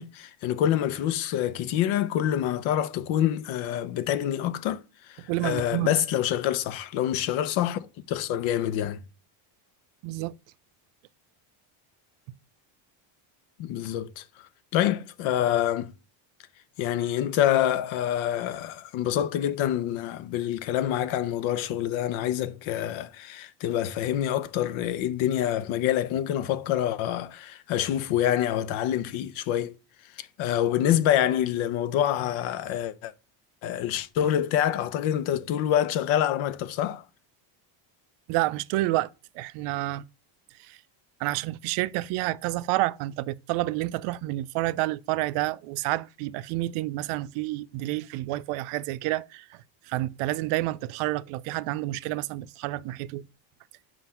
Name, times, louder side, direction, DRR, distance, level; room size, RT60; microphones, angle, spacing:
voice 1, 0.0-9.0 13.6-15.9 16.8-29.8 30.2-33.1 33.6-37.0, left 11 dB, 70° left, 0.7 m, -26 dB
voice 2, 5.3-5.9 10.0-10.3 38.3-40.0 40.6-40.8 41.2-49.6 49.9-53.2, right 17 dB, 85° right, 0.6 m, -29 dB
7.6 x 2.6 x 5.5 m
cardioid pair, 155°, 49 cm